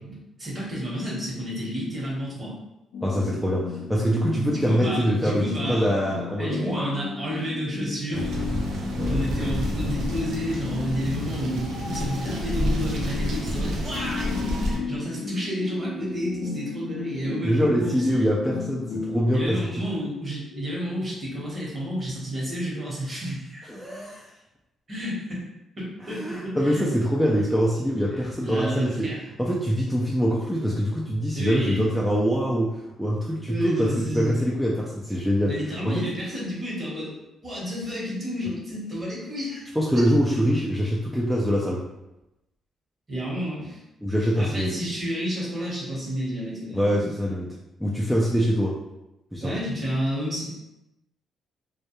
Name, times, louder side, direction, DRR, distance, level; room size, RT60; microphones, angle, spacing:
voice 1, 0.0-2.5 4.3-5.9 6.4-8.3 9.0-18.1 19.3-23.7 24.9-25.4 25.8-26.8 28.4-29.2 31.3-31.9 33.5-34.3 35.5-37.1 37.4-39.7 43.1-43.8 44.4-47.1 49.4-50.5, equal, 35° right, -5 dB, 1.1 m, -31 dB
sound 1, 2.9-19.5, left 5 dB, 75° left, 0.4 m, -34 dB
voice 2, 3.0-6.9 8.9-9.2 17.2-19.8 23.7-24.3 26.1-29.1 29.4-35.6 35.8-36.1 39.8-41.8 44.0-44.8 46.7-47.6 47.8-48.8 49.3-49.6, equal, ahead, -5 dB, 0.4 m, -24 dB
sound 2, 8.1-14.8, equal, 80° right, 0.5 m, -29 dB
2.2 x 2.0 x 2.9 m, 0.93 s
cardioid pair, 90°, 0 cm